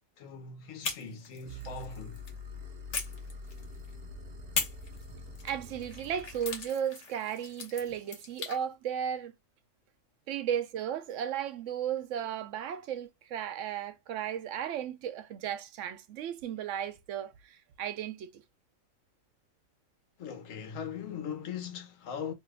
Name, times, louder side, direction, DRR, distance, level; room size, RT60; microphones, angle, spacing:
voice 1, 0.2-2.2 20.2-22.3, left 7 dB, 85° left, 1.2 m, -40 dB
sound 1, 0.8-2.4 2.9-3.9 4.5-8.6, left 5 dB, 65° left, 1.3 m, -39 dB
sound 2, 1.5-6.7, left 1 dB, 45° right, 0.6 m, -45 dB
voice 2, 5.4-9.3 10.3-18.4, right 9 dB, 75° right, 0.9 m, -35 dB
2.9 x 2.3 x 3.3 m
omnidirectional pair, 1.3 m